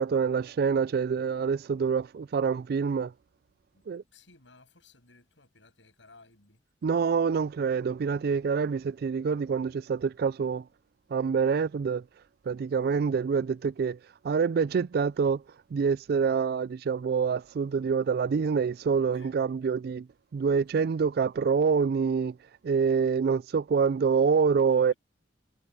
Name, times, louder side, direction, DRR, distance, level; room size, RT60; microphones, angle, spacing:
voice 1, 0.0-3.1 3.9-4.0 6.8-10.7 11.1-12.0 12.5-14.0 14.2-15.4 15.7-20.1 20.3-22.4 22.6-24.9, right 6 dB, 55° right, 0.3 m, -26 dB
voice 2, 3.7-6.6 19.1-19.4 24.7-25.0, left 3 dB, 85° left, 7.5 m, -58 dB
head